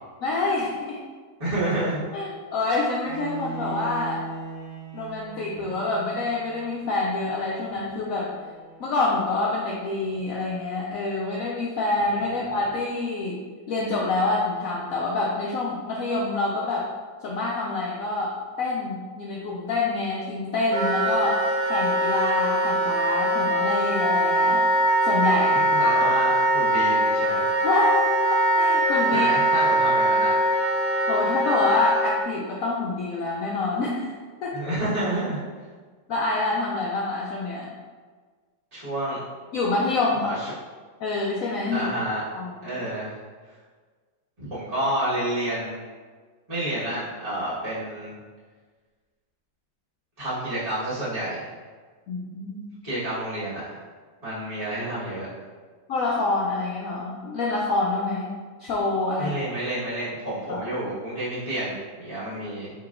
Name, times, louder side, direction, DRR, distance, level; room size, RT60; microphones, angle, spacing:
voice 1, 0.2-1.0 2.1-4.2 4.9-8.3 8.8-13.4 13.7-16.9 17.2-21.4 21.7-24.6 25.0-26.2 27.6-29.3 31.1-34.1 34.4-34.7 36.1-37.7 39.5-40.3 41.0-41.9 42.3-42.5 52.1-52.6 55.9-58.3 58.6-59.3 60.5-60.7, left 3 dB, 80° left, -3 dB, 0.7 m, -26 dB
voice 2, 1.4-2.0 12.3-12.4 25.5-27.5 29.1-30.5 34.5-35.4 38.7-39.2 40.1-40.5 41.7-42.2 42.6-43.2 44.4-45.8 46.5-48.1 50.2-51.5 52.8-53.8 54.2-55.3 59.2-62.7, right 1 dB, 20° right, -13 dB, 1.3 m, -29 dB
Bowed string instrument, 3.0-9.1, right 4 dB, 85° right, 2.0 m, -40 dB
Wind instrument woodwind instrument, 20.7-32.1, right 1 dB, 60° right, 1.4 m, -22 dB
4.7 x 4.0 x 2.5 m, 1.5 s
omnidirectional pair, 2.0 m